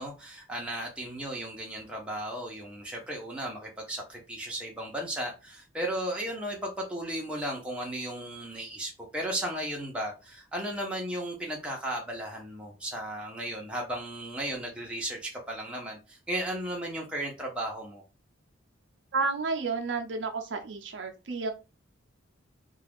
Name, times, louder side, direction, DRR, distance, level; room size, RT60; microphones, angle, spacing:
voice 1, 0.0-18.0, right 1 dB, 5° right, 0.6 m, -35 dB
voice 2, 19.1-21.5, right 4 dB, 60° right, 0.5 m, -31 dB
2.4 x 2.3 x 3.3 m
head